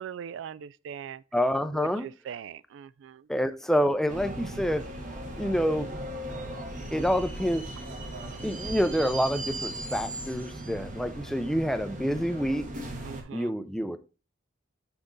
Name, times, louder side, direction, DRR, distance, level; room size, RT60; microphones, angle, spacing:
voice 1, 0.0-1.2 1.7-3.2 13.0-13.5, right 7 dB, 75° right, 0.3 m, -40 dB
voice 2, 1.3-2.1 3.3-4.9 5.4-6.0 6.9-7.7 8.4-12.7 13.3-14.0, equal, ahead, 0.4 m, -27 dB
sound 1, 4.1-13.2, right 1 dB, 45° right, 1.2 m, -37 dB
6.0 x 5.1 x 3.9 m
head